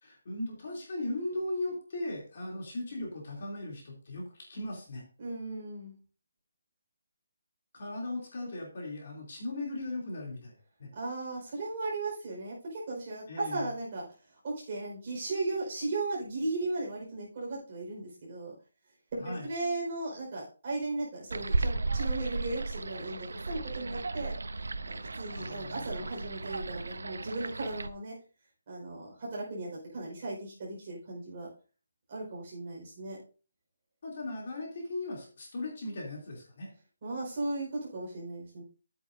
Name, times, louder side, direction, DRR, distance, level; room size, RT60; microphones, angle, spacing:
voice 1, 0.0-5.0 7.7-10.9 13.3-13.7 19.2-19.5 25.4-26.1 34.0-36.7, left 2 dB, 35° left, -1 dB, 2.9 m, -38 dB
voice 2, 5.2-6.0 10.9-14.0 14.4-18.5 19.1-24.4 25.2-28.1 28.7-31.5 32.1-33.2 37.0-38.6, right 2 dB, 25° right, -4 dB, 4.7 m, -36 dB
sound 1, 21.3-27.9, right 3 dB, 85° right, 0.7 m, -35 dB
12.5 x 8.9 x 2.6 m, 0.37 s
hypercardioid pair, 180°, 0 cm